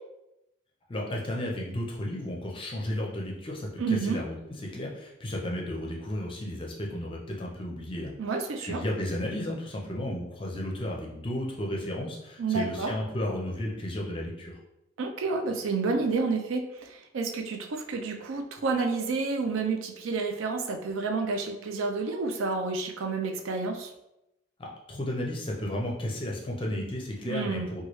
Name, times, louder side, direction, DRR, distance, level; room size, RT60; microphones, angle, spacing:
voice 1, 0.9-8.1 8.6-14.5 24.6-27.8, left 1 dB, 25° left, -1 dB, 0.5 m, -33 dB
voice 2, 3.8-4.2 8.2-8.8 12.4-12.9 15.0-23.9 27.3-27.7, right 4 dB, 80° right, 3 dB, 0.4 m, -30 dB
3.0 x 2.3 x 3.0 m, 0.88 s
head